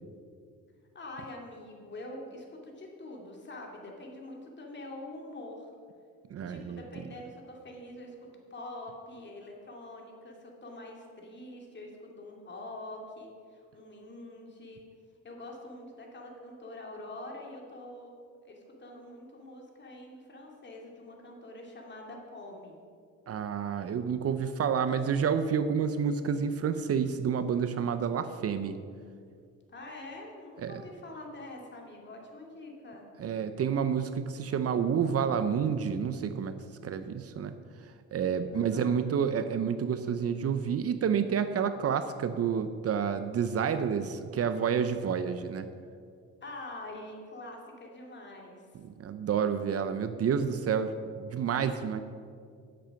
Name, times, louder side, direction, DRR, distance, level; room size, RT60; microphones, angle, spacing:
voice 1, 0.9-5.7 6.4-14.9 15.2-18.1 18.4-22.7 29.7-33.1 38.5-39.0 46.4-48.7 51.6-51.8, left 2 dB, 35° left, 0 dB, 2.4 m, -45 dB
voice 2, 6.3-6.8 23.3-28.8 30.6-30.8 33.2-36.5 36.8-37.6 38.1-45.7 48.8-52.0, right 7 dB, 50° right, 10 dB, 0.7 m, -29 dB
10.0 x 7.7 x 5.8 m, 2.2 s
cardioid pair, 90°, 30 cm